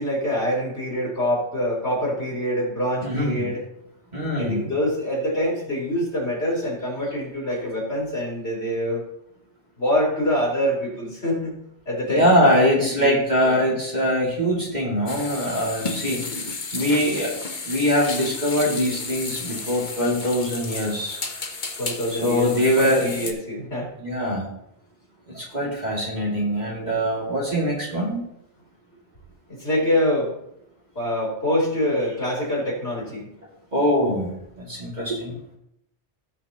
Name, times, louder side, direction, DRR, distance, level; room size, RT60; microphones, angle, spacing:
voice 1, 0.0-3.7 4.4-9.0 9.8-11.5 11.9-13.6 21.8-23.9 29.5-30.3 31.0-33.3, equal, 65° left, -4 dB, 4.2 m, -25 dB
voice 2, 3.0-3.5 4.1-4.6 12.1-17.3 17.6-21.2 22.2-23.1 24.0-24.5 25.3-28.3 33.7-35.4, equal, 40° right, -4 dB, 2.8 m, -23 dB
sound 1, 15.1-23.3, left 3 dB, 45° left, 1.2 m, -33 dB
18.0 x 6.0 x 3.0 m, 0.78 s
omnidirectional pair, 1.2 m